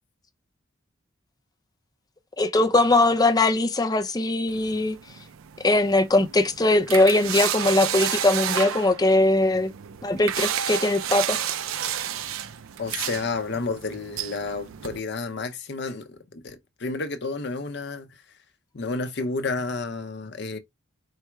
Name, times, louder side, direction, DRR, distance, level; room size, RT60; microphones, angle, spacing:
voice 1, 2.4-5.0 5.6-9.7 10.0-11.4, left 2 dB, 20° left, 0.4 m, -21 dB
sound 1, 4.5-15.0, right 10 dB, 80° right, 0.4 m, -31 dB
voice 2, 12.8-18.2 18.7-20.6, left 3 dB, 55° left, 0.7 m, -31 dB
4.7 x 2.1 x 4.4 m
head